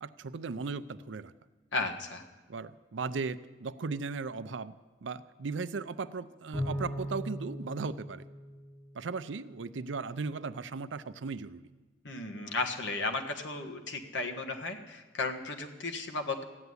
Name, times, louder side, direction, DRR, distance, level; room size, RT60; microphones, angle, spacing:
voice 1, 0.0-1.3 2.5-4.7 5.0-8.3 8.9-11.6, right 4 dB, 75° right, 14 dB, 0.5 m, -37 dB
voice 2, 1.7-2.2 12.0-16.4, left 3 dB, 70° left, 4 dB, 1.6 m, -34 dB
Bowed string instrument, 6.5-9.2, equal, 25° left, 2.6 m, -38 dB
15.0 x 8.1 x 9.6 m, 1.2 s
head